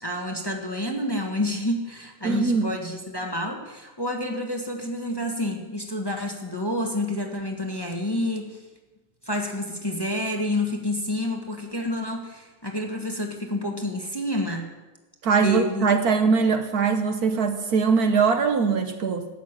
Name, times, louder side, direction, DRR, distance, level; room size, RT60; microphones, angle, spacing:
voice 1, 0.0-8.6 9.2-14.7 15.4-15.9 16.2-16.3, left 1 dB, 15° left, 2 dB, 1.4 m, -29 dB
voice 2, 2.2-2.7 15.2-19.3, right 5 dB, 60° right, 7 dB, 1.4 m, -22 dB
13.5 x 8.9 x 9.0 m, 1.2 s
omnidirectional pair, 1.9 m